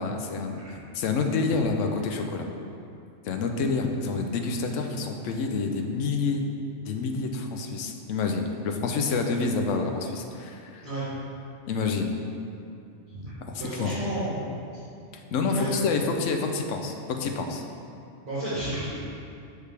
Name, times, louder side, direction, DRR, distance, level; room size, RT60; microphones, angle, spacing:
voice 1, 0.0-2.5 3.2-6.4 6.9-10.9 11.7-12.1 13.4-13.9 15.1-17.6, left 4 dB, 80° left, 4 dB, 1.0 m, -28 dB
voice 2, 13.1-14.4 15.5-15.7 18.2-19.0, right 1 dB, 45° right, -13 dB, 1.6 m, -32 dB
6.6 x 4.9 x 3.3 m, 2.5 s
omnidirectional pair, 1.3 m